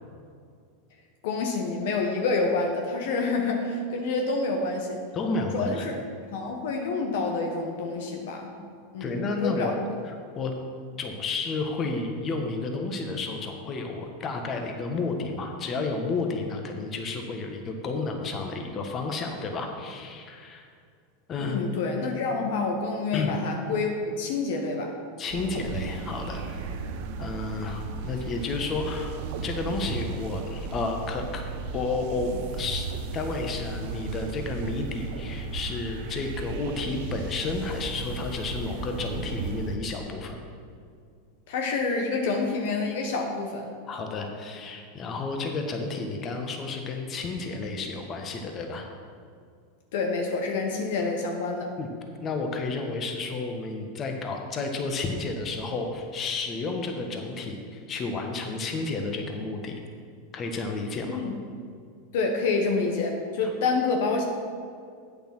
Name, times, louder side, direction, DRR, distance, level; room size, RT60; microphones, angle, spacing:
voice 1, 1.2-5.0 5.4-5.9 6.3-8.5 8.9-9.8 21.4-25.0 41.5-43.7 49.9-51.7 61.1-61.4 62.1-64.2, left 3 dB, 65° left, 2 dB, 1.1 m, -28 dB
voice 2, 5.1-5.8 9.0-9.7 10.0-10.5 11.0-20.7 21.3-21.6 23.1-23.3 25.2-26.8 27.2-29.1 29.4-31.4 31.7-32.9 33.1-40.4 43.9-48.9 51.8-51.9 52.2-59.8 60.3-61.2 63.4-63.5, left 3 dB, 35° left, 3 dB, 1.4 m, -31 dB
sound 1, 25.3-39.8, right 4 dB, 60° right, 0.8 m, -35 dB
8.6 x 6.8 x 6.0 m, 2.3 s
hypercardioid pair, 95°, 0 cm